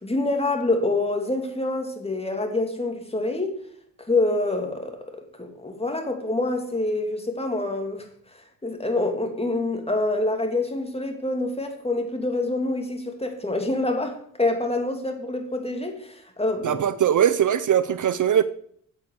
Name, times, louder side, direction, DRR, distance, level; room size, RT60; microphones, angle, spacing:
voice 1, 0.0-3.5 4.1-8.0 8.6-16.8, left 2 dB, 15° left, 2.8 m, -26 dB
voice 2, 16.6-18.4, right 9 dB, 55° right, 0.7 m, -20 dB
8.5 x 8.0 x 6.8 m
supercardioid pair, 60°, 37 cm